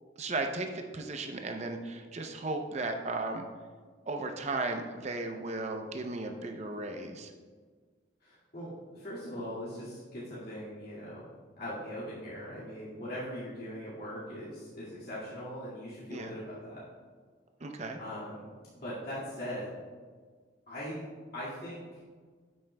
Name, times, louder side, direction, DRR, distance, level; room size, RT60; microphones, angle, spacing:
voice 1, 0.2-3.5 4.1-7.3 16.1-16.4 17.6-18.0, right 3 dB, 35° right, 5 dB, 0.6 m, -35 dB
voice 2, 8.2-11.3 11.6-16.8 18.0-18.5 18.7-19.7 20.7-21.1 21.3-21.8, equal, 55° left, -10 dB, 2.1 m, -40 dB
9.6 x 8.7 x 2.2 m, 1.5 s
head